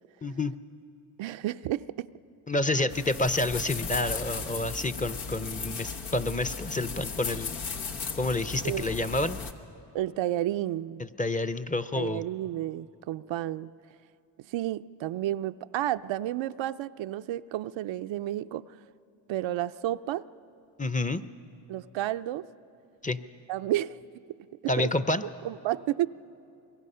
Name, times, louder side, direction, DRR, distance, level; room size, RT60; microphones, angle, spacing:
voice 1, 0.2-0.5 2.5-7.5 8.2-9.4 11.0-12.2 20.8-21.2 23.0-23.2 24.7-25.2, left 2 dB, 15° left, 12 dB, 0.6 m, -29 dB
voice 2, 1.2-2.1 2.8-2.9 8.6-8.9 9.9-11.0 11.9-13.7 14.5-18.6 19.3-20.2 21.7-22.5 23.5-24.0 24.3-24.4 24.6-24.9 25.4-26.1, right 13 dB, 75° right, 11 dB, 0.5 m, -31 dB
sound 1, 2.9-9.5, left 5 dB, 85° left, 1.2 m, -36 dB
25.0 x 22.5 x 5.6 m, 2.7 s
cardioid pair, 65°, 46 cm